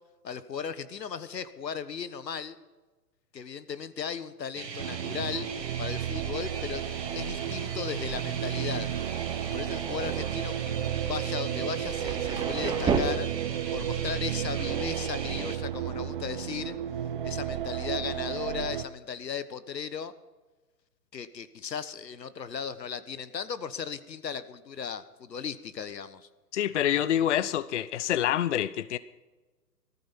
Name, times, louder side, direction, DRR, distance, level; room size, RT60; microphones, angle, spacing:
voice 1, 0.2-2.6 3.3-5.5 5.8-6.8 7.1-8.9 9.5-10.5 11.1-13.3 13.7-16.8 17.2-20.1 21.1-26.3, left 7 dB, 80° left, 1.3 m, -36 dB
sound 1, 4.6-15.6, right 5 dB, 80° right, 2.2 m, -39 dB
Thunder, 4.8-13.0, right 7 dB, 10° right, 0.9 m, -37 dB
sound 2, 4.8-18.9, right 10 dB, 35° right, 0.5 m, -33 dB
voice 2, 26.5-29.0, left 11 dB, 45° left, 0.5 m, -26 dB
18.5 x 14.0 x 5.5 m
hypercardioid pair, 135°, 49 cm